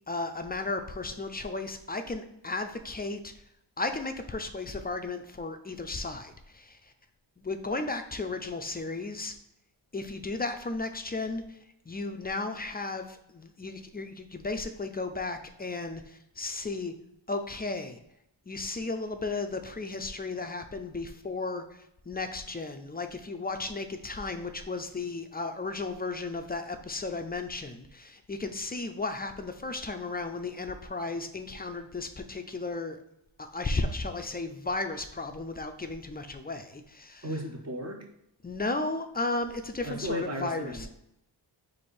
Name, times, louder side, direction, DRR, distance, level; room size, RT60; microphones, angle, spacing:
voice 1, 0.1-3.3 3.8-6.9 7.4-9.3 9.9-11.6 11.9-16.9 17.3-18.0 18.5-33.0 33.4-37.3 38.4-40.9, left 3 dB, 25° left, 7 dB, 0.3 m, -34 dB
voice 2, 37.2-38.1 39.8-40.9, equal, 35° right, 3 dB, 0.7 m, -35 dB
4.2 x 2.6 x 4.7 m, 0.80 s
wide cardioid pair, 100°, 45 cm